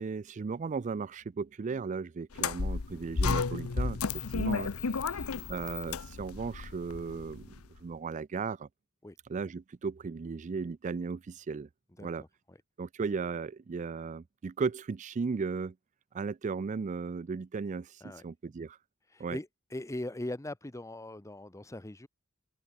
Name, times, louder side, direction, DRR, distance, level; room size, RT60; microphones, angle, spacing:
voice 1, 0.0-4.0 4.3-7.5 7.8-8.7 9.3-11.7 12.0-12.2 12.8-15.7 16.1-18.8 19.2-19.4, right 5 dB, 35° right, 0.4 m, -36 dB
sound 1, 2.3-7.6, left 4 dB, 80° left, 0.8 m, -33 dB
voice 2, 12.0-12.6 18.0-18.2 19.1-22.1, left 1 dB, 15° left, 0.7 m, -41 dB
head